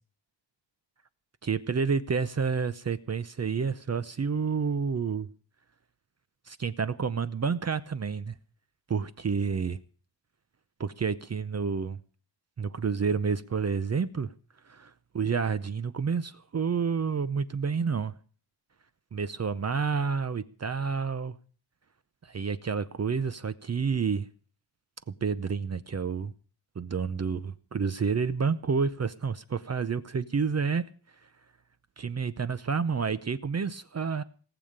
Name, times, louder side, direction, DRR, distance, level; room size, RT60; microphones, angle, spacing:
voice 1, 1.4-5.3 6.5-8.3 8.9-9.8 10.8-12.0 12.6-14.3 14.7-18.1 19.1-21.3 22.2-24.3 25.1-26.3 26.8-30.9 32.0-34.2, right 5 dB, 35° right, 0.6 m, -29 dB
18.5 x 7.0 x 8.8 m
wide cardioid pair, 175°, 46 cm